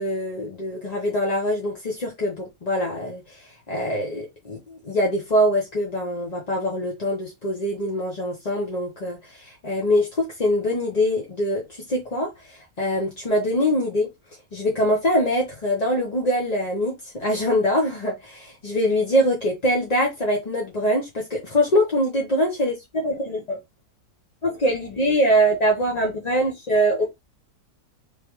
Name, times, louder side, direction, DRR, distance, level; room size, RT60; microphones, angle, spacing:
voice 1, 0.0-14.1 14.5-23.6 24.4-27.2, equal, 35° left, 0.6 m, -23 dB
3.3 x 3.2 x 3.0 m
omnidirectional pair, 1.9 m